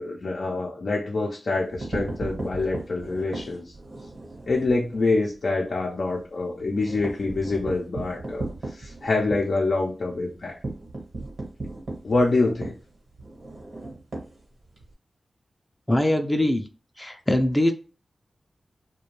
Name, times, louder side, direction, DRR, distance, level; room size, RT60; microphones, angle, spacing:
voice 1, 0.0-3.7 4.5-10.6 12.0-12.8, left 3 dB, 70° left, -2 dB, 0.5 m, -26 dB
sound 1, 1.6-4.8 5.2-5.3 5.6-5.7 6.1-14.9, right 2 dB, 70° right, 1.0 m, -36 dB
voice 2, 15.9-16.6 17.0-17.7, left 1 dB, 15° left, 5 dB, 0.4 m, -22 dB
2.4 x 2.2 x 3.0 m, 0.37 s
cardioid pair, 40°, 0 cm